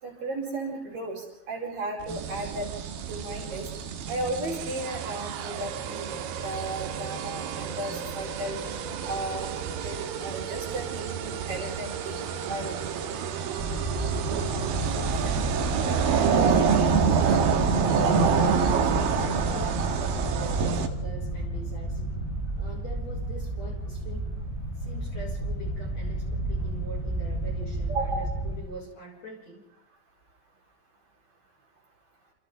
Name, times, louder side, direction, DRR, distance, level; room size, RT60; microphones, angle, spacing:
voice 1, 0.0-2.7 3.1-3.7 4.1-8.6 9.0-12.2 12.5-12.8 27.9-28.3, right 2 dB, 45° right, -3 dB, 6.1 m, -34 dB
sound 1, 2.0-16.3, right 9 dB, 80° right, 3.6 m, -38 dB
sound 2, 2.1-20.9, right 6 dB, 60° right, 2.7 m, -28 dB
sound 3, 13.6-28.6, right 1 dB, 15° right, 7.9 m, -31 dB
voice 2, 14.9-18.3 18.7-22.1 22.5-24.3 24.8-29.6, left 1 dB, 30° left, -1 dB, 7.2 m, -43 dB
29.5 x 28.0 x 3.9 m, 0.81 s
omnidirectional pair, 5.9 m